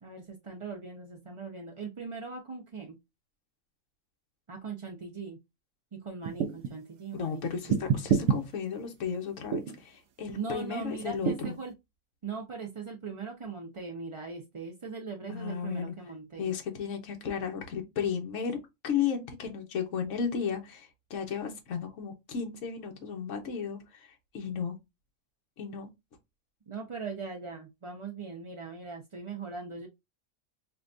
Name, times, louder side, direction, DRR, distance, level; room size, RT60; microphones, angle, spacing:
voice 1, 0.0-3.0 4.5-5.4 5.9-8.1 10.3-11.7 12.2-16.5 26.7-29.9, right 4 dB, 45° right, 0.4 m, -40 dB
sound 1, 6.2-6.7 7.7-8.4 9.5-9.8 11.3-11.6, right 7 dB, 80° right, 1.0 m, -27 dB
voice 2, 7.2-11.6 15.3-15.9 16.4-18.6 18.8-24.8 25.6-25.9, left 7 dB, 70° left, 1.2 m, -34 dB
5.6 x 2.3 x 2.5 m
omnidirectional pair, 1.4 m